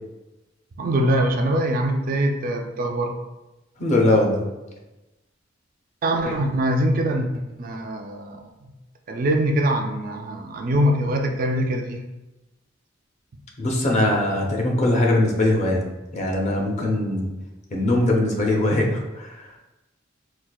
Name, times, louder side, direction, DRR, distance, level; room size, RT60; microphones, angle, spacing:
voice 1, 0.8-3.1 6.0-8.7 9.1-12.0, right 1 dB, 45° right, 3 dB, 0.3 m, -23 dB
voice 2, 3.8-4.4 6.2-6.3 13.6-15.8 16.1-17.3 17.7-19.4, left 1 dB, 35° left, 0 dB, 0.6 m, -21 dB
4.2 x 2.3 x 2.3 m, 1.0 s
head